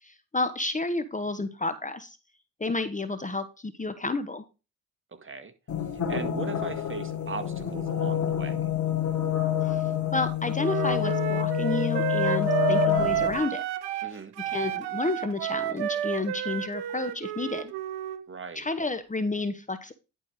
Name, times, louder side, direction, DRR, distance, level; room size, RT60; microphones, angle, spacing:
voice 1, 0.0-2.2 2.6-4.4 9.6-9.8 10.1-13.6 13.9-14.1 14.5-17.7 18.5-19.9, left 3 dB, 20° left, 1.0 m, -31 dB
voice 2, 5.2-5.5 6.1-8.5 14.0-14.3 18.3-18.7, right 5 dB, 30° right, 1.7 m, -38 dB
sound 1, 5.7-13.4, left 10 dB, 45° left, 2.1 m, -28 dB
Wind instrument woodwind instrument, 10.6-14.1 14.4-18.2, right 12 dB, 80° right, 0.9 m, -30 dB
10.5 x 4.5 x 4.7 m
supercardioid pair, 60°, 39 cm